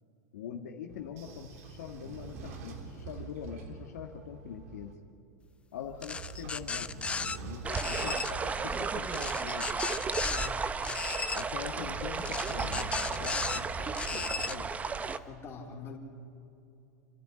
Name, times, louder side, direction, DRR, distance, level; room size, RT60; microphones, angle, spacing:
voice 1, 0.3-5.0 5.7-6.9 7.4-9.7 11.3-12.9 13.2-14.7, left 8 dB, 75° left, 3 dB, 1.7 m, -43 dB
Train / Sliding door, 0.9-4.9 5.8-10.6 11.4-15.3, right 5 dB, 70° right, 3.2 m, -46 dB
sound 1, 6.0-7.4 7.7-8.3 9.1-10.5 10.8-11.4 12.3-13.6 13.9-14.6, left 4 dB, 15° left, 0.6 m, -35 dB
voice 2, 7.6-7.9 10.2-10.6 15.0-16.1, left 5 dB, 30° left, -1 dB, 4.0 m, -45 dB
sound 2, 7.6-15.2, right 5 dB, 15° right, 0.8 m, -34 dB
29.5 x 11.0 x 10.0 m, 2.7 s
hypercardioid pair, 120°, 9 cm